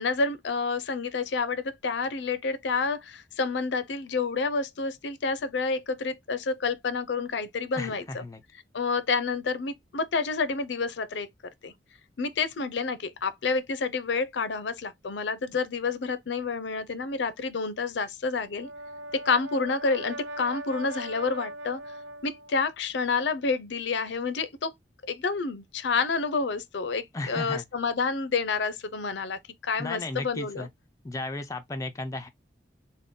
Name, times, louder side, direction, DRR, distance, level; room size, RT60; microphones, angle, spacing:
voice 1, 0.0-8.2 8.7-11.3 11.6-11.7 12.2-18.7 19.1-21.8 22.2-24.7 25.1-30.7, left 4 dB, 75° left, 0.5 m, -29 dB
voice 2, 7.7-8.4 27.1-27.6 29.8-30.7 31.0-32.3, left 2 dB, 20° left, 0.3 m, -34 dB
Brass instrument, 18.4-22.6, right 1 dB, 85° right, 0.6 m, -40 dB
3.7 x 2.2 x 3.6 m
head